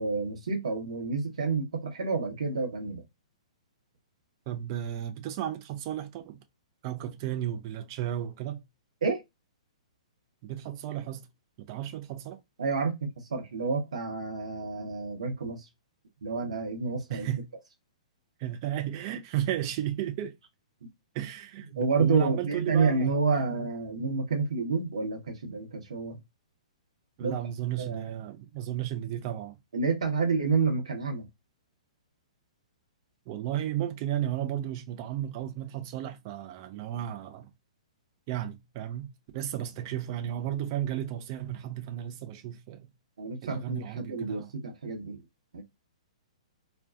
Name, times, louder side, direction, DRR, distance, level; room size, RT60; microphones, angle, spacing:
voice 1, 0.0-3.0 9.0-9.2 12.6-15.7 16.2-17.3 21.8-26.2 27.2-27.3 27.8-28.1 29.7-31.3 43.2-45.2 45.5-45.6, right 4 dB, 70° right, 0.9 m, -29 dB
voice 2, 4.5-6.4 6.8-8.6 10.4-11.3 11.6-12.4 17.1-17.4 18.4-20.3 21.1-23.2 27.2-29.6 33.3-37.5 38.3-39.1 39.3-42.9 43.4-44.5, right 12 dB, 40° right, 0.5 m, -34 dB
2.5 x 2.2 x 2.3 m
figure-of-eight pair, 120°, 4 cm